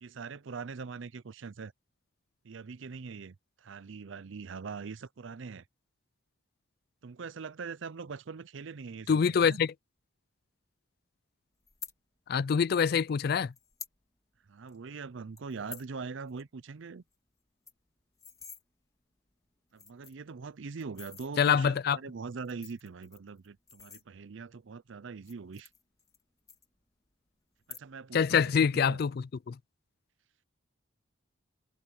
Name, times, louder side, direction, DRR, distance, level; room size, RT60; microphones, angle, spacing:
voice 1, 0.0-1.7 2.4-3.4 3.6-5.6 7.0-9.6 14.5-17.0 19.7-25.7 27.7-29.0, right 5 dB, 65° right, 0.5 m, -42 dB
voice 2, 9.1-9.7 12.3-13.5 21.4-22.0 28.1-29.6, left 6 dB, 50° left, 0.3 m, -25 dB
sound 1, 11.6-11.9 12.9-13.0 13.5-14.0 14.3-14.4 14.7-14.9 15.4-15.9 16.3-16.4 16.7-16.8 17.1-17.2 17.5-18.6 19.3-19.4 19.7-20.3 20.8-21.3 22.3-24.5 25.1-26.2 26.5-27.1 27.5-28.1 28.4-28.8, left 6 dB, 15° left, 1.9 m, -48 dB
head